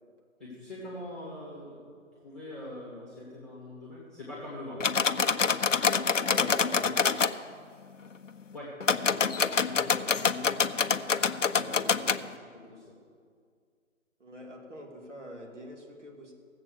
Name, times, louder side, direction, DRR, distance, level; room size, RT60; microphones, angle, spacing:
voice 1, 0.4-5.3 8.5-11.1 11.5-13.0, left 1 dB, ahead, -6 dB, 1.6 m, -44 dB
sound 1, 4.8-7.3 8.8-12.2, left 5 dB, 65° left, 0.6 m, -26 dB
voice 2, 6.2-7.3 14.2-16.3, right 1 dB, 60° right, 1 dB, 2.5 m, -45 dB
16.5 x 7.6 x 6.7 m, 2.1 s
figure-of-eight pair, 150°, 40 cm